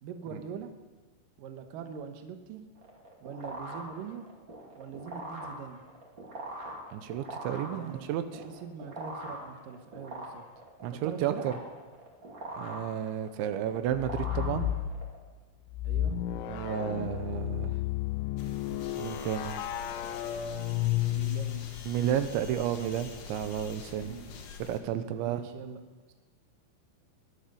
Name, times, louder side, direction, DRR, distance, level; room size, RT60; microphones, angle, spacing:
voice 1, 0.0-0.7 1.4-2.6 3.2-4.3 4.8-5.8 7.7-8.1 8.6-10.4 10.9-11.4 15.8-16.2 20.8-21.7 24.0-24.4 25.2-25.8 26.1-26.2, right 7 dB, 70° right, 7 dB, 2.2 m, -42 dB
sound 1, 2.8-15.2, right 1 dB, 30° right, 2.6 m, -43 dB
voice 2, 6.9-8.4 10.8-11.5 12.6-14.7 16.5-17.7 19.0-19.6 21.9-24.2 24.6-25.4, right 10 dB, 85° right, 10 dB, 3.2 m, -32 dB
sound 2, 13.9-14.9 15.7-21.7, left 13 dB, 80° left, 3.1 m, -32 dB
sound 3, 18.4-24.8, left 6 dB, 65° left, 3.3 m, -45 dB
21.0 x 12.0 x 5.5 m, 1.3 s
omnidirectional pair, 5.3 m